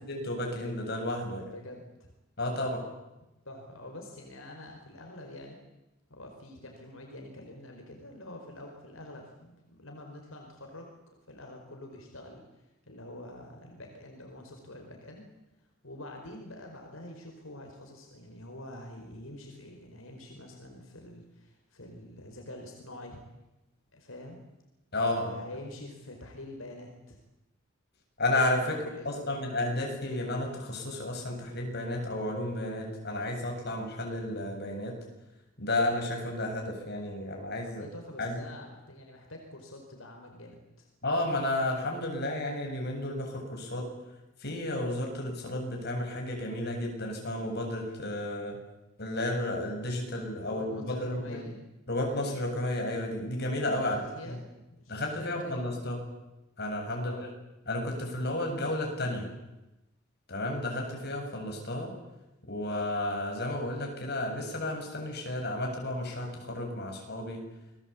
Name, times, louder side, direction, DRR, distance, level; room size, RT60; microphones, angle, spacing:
voice 1, 0.1-1.5 2.4-2.8 24.9-25.4 28.2-28.8 29.0-34.9 35.6-37.8 38.2-38.4 41.0-43.9 44.4-48.6 49.0-51.4 51.9-54.0 54.9-56.0 56.6-57.3 57.7-59.3 60.3-61.9 62.5-67.4, left 1 dB, 55° left, 1 dB, 7.8 m, -32 dB
voice 2, 1.4-2.1 3.2-5.6 6.1-10.9 11.3-15.3 15.8-23.2 23.9-24.4 25.1-27.2 28.6-29.4 37.6-40.9 50.4-51.6 53.8-55.7 56.9-57.3, left 1 dB, 80° left, 2 dB, 5.1 m, -46 dB
28.5 x 21.0 x 8.7 m, 0.96 s
head